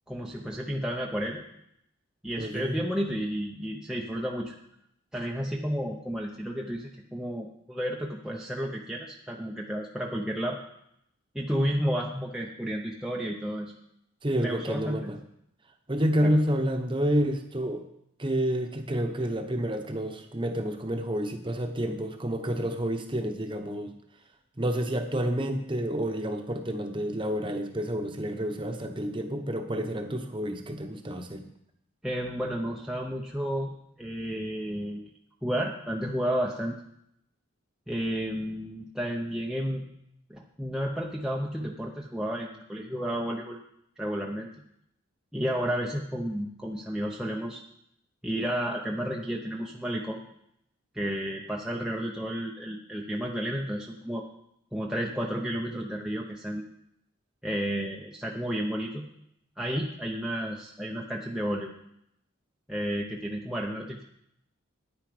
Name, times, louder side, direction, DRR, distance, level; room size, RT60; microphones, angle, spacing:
voice 1, 0.1-1.4 2.2-4.6 5.1-10.6 11.3-13.7 14.4-15.1 16.2-16.4 32.0-33.7 34.0-35.1 35.4-36.8 37.9-39.8 40.3-43.6 44.0-44.5 45.3-47.6 48.2-50.2 50.9-54.2 54.7-56.6 57.4-59.1 59.6-61.7 62.7-64.0, equal, 5° right, -1 dB, 0.6 m, -32 dB
voice 2, 2.4-2.8 14.2-15.2 15.9-17.8 18.2-23.9 24.6-31.4, equal, 25° right, 5 dB, 1.0 m, -29 dB
9.8 x 9.6 x 5.0 m, 0.76 s
head